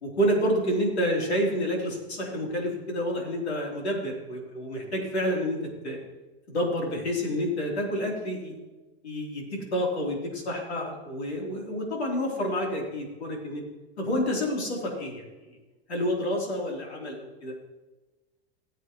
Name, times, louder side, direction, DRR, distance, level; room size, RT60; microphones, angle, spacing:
voice 1, 0.0-5.6 5.8-6.0 6.5-8.5 9.0-13.6 14.0-15.6 15.9-17.5, equal, 90° left, -1 dB, 3.5 m, -29 dB
18.0 x 7.9 x 3.1 m, 1.1 s
hypercardioid pair, 90°, 32 cm